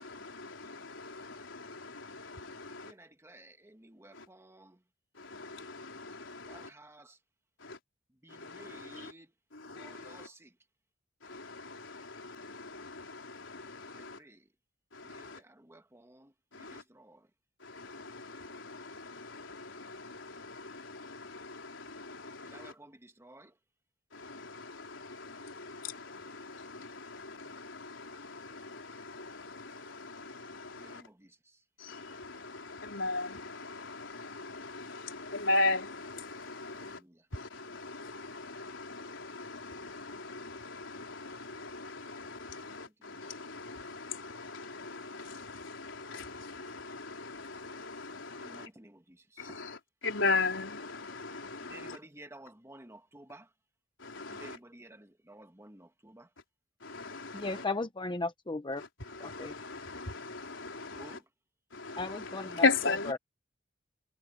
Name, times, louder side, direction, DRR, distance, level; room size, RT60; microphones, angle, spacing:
voice 1, 0.0-2.9 4.1-4.3 5.1-6.7 7.6-7.8 8.3-9.1 9.5-10.3 11.2-14.2 14.9-15.4 16.5-16.8 17.6-22.7 24.1-31.0 31.8-37.0 37.3-48.7 49.4-52.0 54.0-54.6 56.8-57.7 58.8-61.2 61.7-63.1, left 3 dB, 80° left, 4.2 m, -38 dB
voice 2, 2.7-4.8 6.5-7.2 8.2-9.3 9.7-10.6 13.9-14.5 15.0-17.3 22.4-23.6 30.7-31.6 36.7-37.3 42.5-43.3 48.4-49.6 51.6-53.5 54.3-56.3 60.9-61.3, right 1 dB, 15° right, 2.0 m, -54 dB
voice 3, 57.3-58.8 59.2-59.5 62.0-62.6, left 3 dB, 25° left, 0.8 m, -35 dB
head